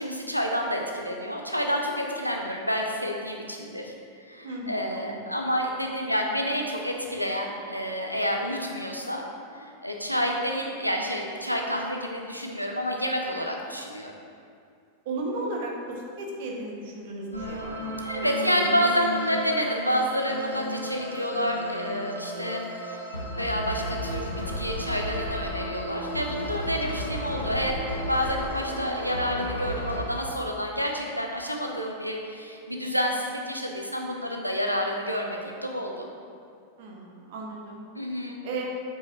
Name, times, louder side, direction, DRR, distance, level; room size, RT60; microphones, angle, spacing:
voice 1, 0.0-3.9 4.3-9.2 9.5-14.1 18.0-23.0 23.4-36.1 37.9-38.4, equal, 90° right, 1 dB, 0.8 m, -29 dB
voice 2, 4.4-5.1 15.0-18.0 18.5-18.8 36.8-37.8 38.4-38.6, right 2 dB, 50° right, -1 dB, 1.3 m, -35 dB
sound 1, 17.3-30.0, equal, 85° left, 1.0 m, -34 dB
7.9 x 4.7 x 4.6 m, 2.4 s
figure-of-eight pair, 90°, 0 cm